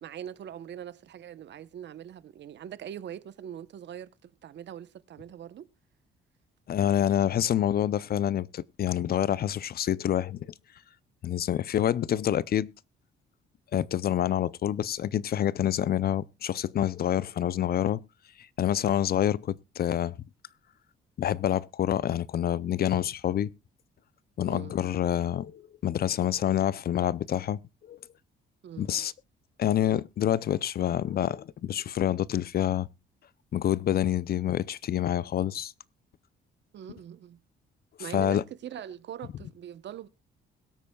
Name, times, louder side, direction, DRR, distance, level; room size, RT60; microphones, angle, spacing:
voice 1, 0.0-5.7 24.5-24.8 28.6-29.0 36.7-37.4 38.0-40.1, right 10 dB, 65° right, 0.9 m, -42 dB
voice 2, 6.7-10.5 11.2-12.7 13.7-18.0 18.6-20.1 21.2-23.5 24.4-27.6 27.9-28.0 28.8-29.1 29.6-32.9 33.5-35.7 38.1-38.4, left 10 dB, 50° left, 0.5 m, -27 dB
22.0 x 8.5 x 2.3 m
cardioid pair, 90°, 20 cm